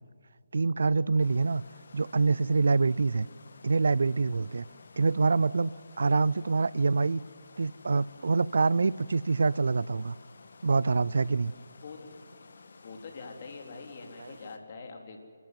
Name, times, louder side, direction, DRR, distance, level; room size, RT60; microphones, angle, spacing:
voice 1, 0.5-1.6 1.9-3.3 3.6-4.7 5.0-5.7 6.0-7.2 7.6-10.2 10.6-11.5 14.2-14.4, right 4 dB, 65° right, 22 dB, 0.5 m, -25 dB
sound 1, 1.2-14.6, left 4 dB, 60° left, 2.0 m, -54 dB
voice 2, 12.8-15.2, left 4 dB, 45° left, 3 dB, 3.7 m, -44 dB
29.0 x 13.5 x 9.3 m, 2.3 s
figure-of-eight pair, 155°, 0 cm